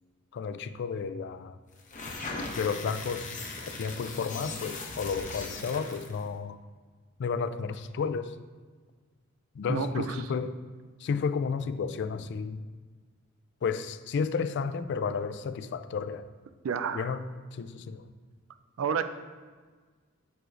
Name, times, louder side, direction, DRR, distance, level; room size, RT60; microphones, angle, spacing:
voice 1, 0.3-1.6 2.5-3.4 3.7-6.6 7.2-8.4 9.6-10.6 11.0-12.7 13.6-16.2 16.9-18.0, left 5 dB, 55° left, 11 dB, 0.3 m, -32 dB
sound 1, 1.8-6.2, left 3 dB, 40° left, 0.8 m, -39 dB
voice 2, 9.7-10.2 16.6-17.1 18.8-19.0, right 6 dB, 75° right, 11 dB, 0.4 m, -30 dB
7.8 x 6.0 x 2.5 m, 1.5 s
head